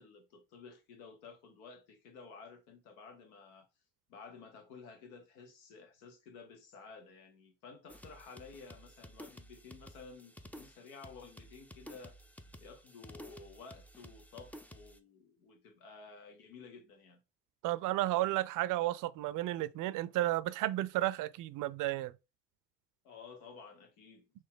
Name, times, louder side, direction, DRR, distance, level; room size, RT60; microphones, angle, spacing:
voice 1, 0.0-3.7 4.1-12.2 12.6-17.2 23.0-24.3, left 5 dB, 80° left, 1.2 m, -53 dB
sound 1, 7.9-15.0, equal, 5° left, 0.4 m, -53 dB
voice 2, 17.6-22.1, right 15 dB, 50° right, 0.5 m, -33 dB
4.0 x 3.0 x 3.8 m
hypercardioid pair, 60°, 42 cm